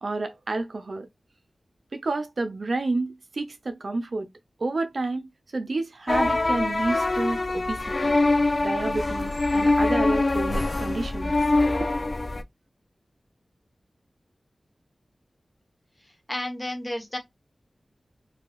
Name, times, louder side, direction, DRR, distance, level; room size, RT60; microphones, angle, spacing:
voice 1, 0.0-1.1 1.9-4.3 4.6-5.3 5.5-8.1 8.6-11.3 11.8-11.9, right 2 dB, 60° right, 0.5 m, -30 dB
sound 1, 6.1-12.4, left 2 dB, 45° left, 0.3 m, -24 dB
voice 2, 16.3-17.2, left 1 dB, 20° left, 1.1 m, -31 dB
3.2 x 2.6 x 2.4 m
wide cardioid pair, 70°, 0 cm